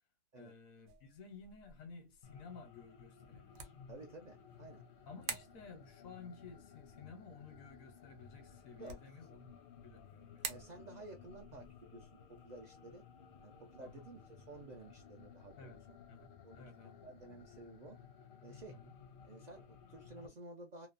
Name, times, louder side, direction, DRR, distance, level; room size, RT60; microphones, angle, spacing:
voice 1, 0.3-3.7 5.1-10.7 13.8-14.1 15.6-17.0 18.7-18.9, left 4 dB, 85° left, 1.2 m, -55 dB
sound 1, 0.9-15.0, right 7 dB, 85° right, 1.0 m, -53 dB
sound 2, 2.2-20.3, left 6 dB, 60° left, 0.6 m, -57 dB
voice 2, 3.9-4.8 8.8-9.0 10.5-13.0 13.4-15.8 16.4-16.6 17.0-18.0 18.4-18.8 19.2-20.9, right 2 dB, 70° right, 0.4 m, -53 dB
3.0 x 2.1 x 2.4 m
omnidirectional pair, 1.4 m